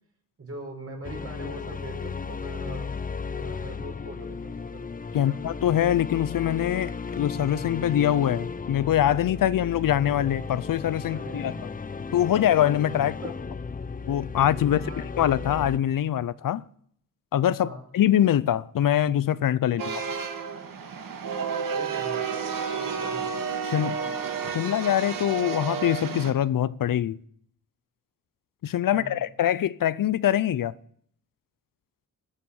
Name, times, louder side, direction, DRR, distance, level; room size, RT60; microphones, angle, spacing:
voice 1, 0.4-2.9 3.3-4.9 5.2-5.4 11.1-11.6 13.0-13.3 14.7-15.1 17.6-17.8 19.7-19.8 21.7-22.2 22.7-23.3 23.8-24.1 28.9-29.2, right 2 dB, 45° right, 4.9 m, -41 dB
sound 1, 1.0-15.8, left 5 dB, 25° left, 0.6 m, -35 dB
voice 2, 5.1-11.5 12.1-13.3 14.0-14.9 15.2-16.6 17.3-20.0 23.7-23.9 24.5-27.2 28.6-30.7, left 11 dB, 75° left, 0.6 m, -24 dB
sound 2, 19.8-26.3, right 6 dB, 80° right, 1.8 m, -31 dB
20.0 x 7.5 x 7.1 m
wide cardioid pair, 145°, 33 cm